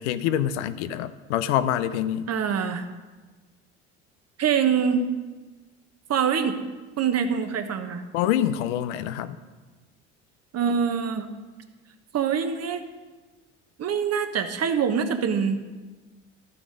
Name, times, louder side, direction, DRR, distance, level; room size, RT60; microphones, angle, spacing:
voice 1, 0.0-2.3 8.1-9.4, left 11 dB, 80° left, 13 dB, 0.7 m, -26 dB
voice 2, 2.3-2.8 4.4-5.1 6.1-6.6 7.0-8.0 10.5-11.3 12.1-12.8 13.8-15.7, right 7 dB, 45° right, 7 dB, 1.3 m, -24 dB
12.5 x 7.1 x 5.3 m, 1.3 s
hypercardioid pair, 70°, 35 cm